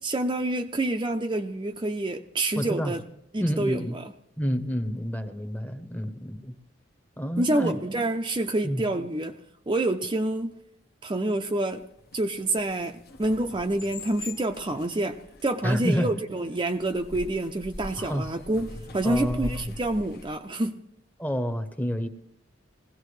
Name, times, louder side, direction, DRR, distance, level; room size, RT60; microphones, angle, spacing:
voice 1, 0.0-3.0 3.3-4.1 7.4-9.3 9.7-10.5 11.0-11.8 12.1-20.7, right 1 dB, 25° right, 4 dB, 0.5 m, -27 dB
voice 2, 2.6-2.9 3.4-4.0 4.4-6.6 7.2-7.8 8.6-8.8 15.6-16.1 18.0-18.3 19.0-19.6 21.2-22.1, equal, 10° left, 9 dB, 0.9 m, -29 dB
sound 1, 11.8-20.4, left 1 dB, 55° left, 1.0 m, -42 dB
20.0 x 16.5 x 3.2 m, 0.80 s
head